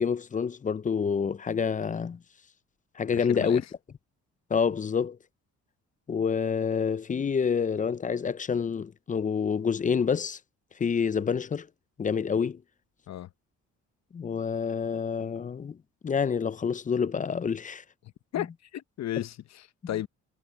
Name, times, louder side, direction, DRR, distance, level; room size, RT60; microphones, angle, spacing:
voice 1, 0.0-2.2 3.0-3.6 4.5-5.2 6.1-10.4 10.8-11.7 12.0-12.6 14.1-15.8 16.0-17.8 18.4-18.5, left 6 dB, 25° left, 0.5 m, -27 dB
voice 2, 3.2-3.7 13.1-13.3 18.3-20.1, left 12 dB, 60° left, 0.8 m, -34 dB
cardioid pair, 90°, 30 cm